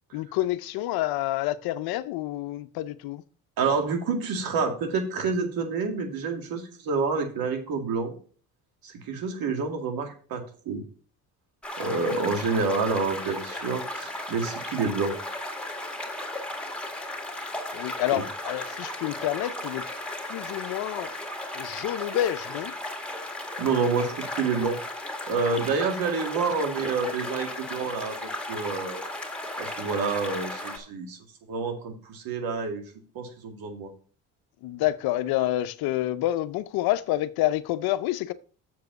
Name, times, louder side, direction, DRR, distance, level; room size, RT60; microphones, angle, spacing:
voice 1, 0.1-3.2 17.7-19.8 20.3-21.1 21.5-22.7 34.6-38.3, left 14 dB, 75° left, 0.6 m, -28 dB
voice 2, 3.6-8.1 8.8-10.8 11.8-15.1 18.1-18.2 23.6-24.8 25.3-29.0 29.6-31.2 31.5-32.8 33.2-33.9, right 4 dB, 70° right, 2.2 m, -28 dB
sound 1, 11.6-30.8, left 1 dB, 5° left, 2.1 m, -35 dB
7.1 x 4.8 x 6.5 m
supercardioid pair, 80°, 37 cm